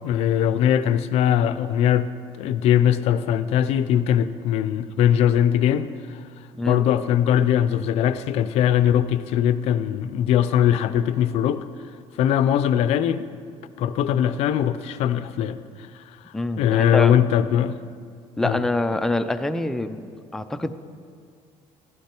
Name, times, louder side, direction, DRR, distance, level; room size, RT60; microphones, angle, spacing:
voice 1, 0.0-2.1 2.4-6.2 6.7-11.6 12.2-13.3 13.8-15.6 16.6-17.8 18.4-18.7, left 10 dB, 60° left, 13 dB, 0.5 m, -21 dB
voice 2, 6.6-6.9 16.3-17.3 18.4-20.7, left 2 dB, 5° left, 8 dB, 0.4 m, -26 dB
15.5 x 12.0 x 4.4 m, 2.2 s
cardioid pair, 160°, 12 cm